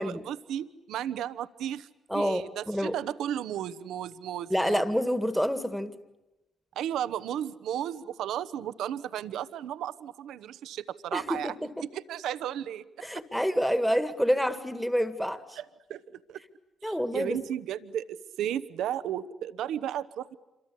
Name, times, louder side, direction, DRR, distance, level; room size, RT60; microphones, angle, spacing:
voice 1, 0.0-1.9 2.1-4.8 6.8-12.8 15.6-15.7 15.9-16.0 16.3-16.4 16.8-20.3, right 10 dB, 70° right, 14 dB, 1.0 m, -34 dB
voice 2, 2.1-3.0 4.5-6.0 11.1-11.5 13.0-15.6 16.8-17.4, equal, ahead, 11 dB, 1.8 m, -28 dB
27.0 x 24.0 x 8.5 m, 1.0 s
hypercardioid pair, 50°, 0 cm